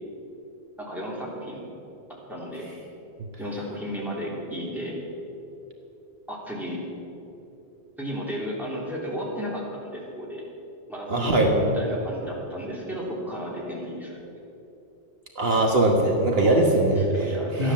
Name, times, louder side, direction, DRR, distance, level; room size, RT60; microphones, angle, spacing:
voice 1, 0.8-1.7 2.3-2.7 3.4-5.0 6.3-6.8 8.0-10.4 10.9-14.2 16.4-17.7, equal, ahead, -5 dB, 3.3 m, -33 dB
voice 2, 11.1-11.5 15.4-17.0 17.6-17.7, right 2 dB, 65° right, 1 dB, 1.6 m, -20 dB
14.5 x 10.5 x 7.2 m, 2.8 s
omnidirectional pair, 1.1 m